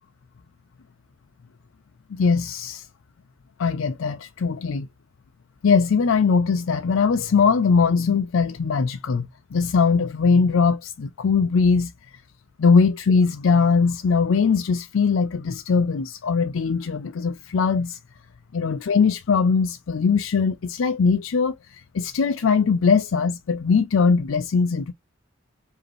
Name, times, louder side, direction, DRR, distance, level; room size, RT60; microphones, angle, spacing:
voice 1, 2.1-2.9 3.6-4.9 5.6-12.2 12.6-18.0 18.5-24.9, left 5 dB, 70° left, 0.4 m, -21 dB
5.0 x 2.7 x 3.1 m
head